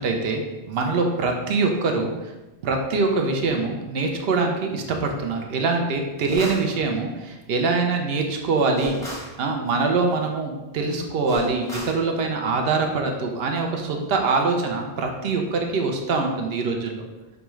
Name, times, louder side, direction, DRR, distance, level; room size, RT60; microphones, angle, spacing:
voice 1, 0.0-2.1 2.6-9.0 9.4-17.0, right 3 dB, 65° right, 3 dB, 0.8 m, -24 dB
sound 1, 6.3-6.7 8.8-9.4 11.3-12.0, equal, 5° left, 0.6 m, -32 dB
5.1 x 2.3 x 3.0 m, 1.1 s
omnidirectional pair, 1.1 m